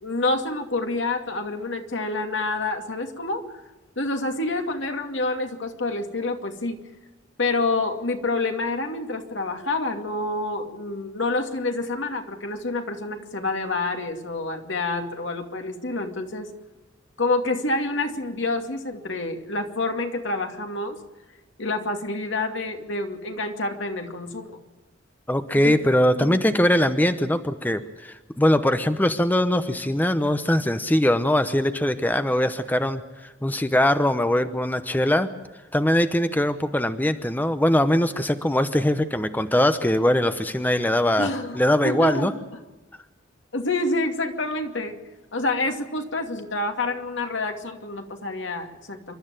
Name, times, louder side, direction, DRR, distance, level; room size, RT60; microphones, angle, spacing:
voice 1, 0.0-3.5 4.0-6.8 7.4-16.5 17.2-21.0 21.6-24.6 25.5-25.8 26.2-26.4 41.2-41.6 41.8-42.3 43.5-45.0 45.3-49.1, left 2 dB, 70° left, 5 dB, 2.5 m, -28 dB
voice 2, 25.3-35.3 35.7-41.3 41.5-42.3, left 1 dB, 10° left, 10 dB, 0.8 m, -21 dB
28.0 x 13.0 x 9.0 m, 1.1 s
head